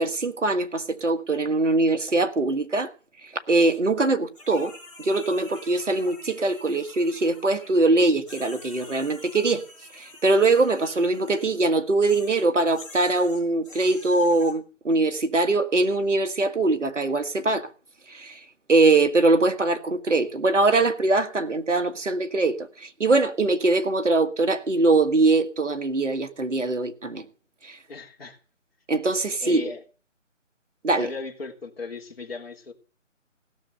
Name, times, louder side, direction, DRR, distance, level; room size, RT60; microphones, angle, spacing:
voice 1, 0.0-2.9 3.2-9.6 9.9-17.7 18.1-18.4 18.7-27.2 27.6-27.8 28.9-29.6 30.8-31.1, right 2 dB, 70° right, 1.7 m, -22 dB
sound 1, 4.3-7.9 8.2-11.5 12.0-14.5, left 2 dB, ahead, 4.7 m, -47 dB
voice 2, 27.9-28.4 29.4-29.8 31.0-32.7, left 4 dB, 50° left, 3.2 m, -37 dB
16.5 x 6.9 x 7.9 m
figure-of-eight pair, 155°, 38 cm